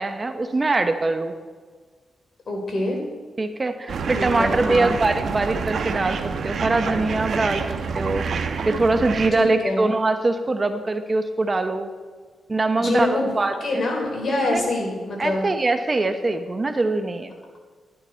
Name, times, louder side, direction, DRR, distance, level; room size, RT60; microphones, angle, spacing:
voice 1, 0.0-1.3 3.4-6.2 6.4-7.6 7.9-8.2 8.7-11.9 12.5-13.8 14.5-14.7 15.2-17.3, right 2 dB, 30° right, 8 dB, 0.9 m, -23 dB
voice 2, 2.5-3.0 4.1-4.9 9.3-9.8 12.8-15.5, left 2 dB, 50° left, -1 dB, 4.1 m, -25 dB
sound 1, 3.9-9.3, right 5 dB, 70° right, 1.0 m, -27 dB
13.0 x 11.0 x 4.4 m, 1.5 s
cardioid pair, 80°, 0 cm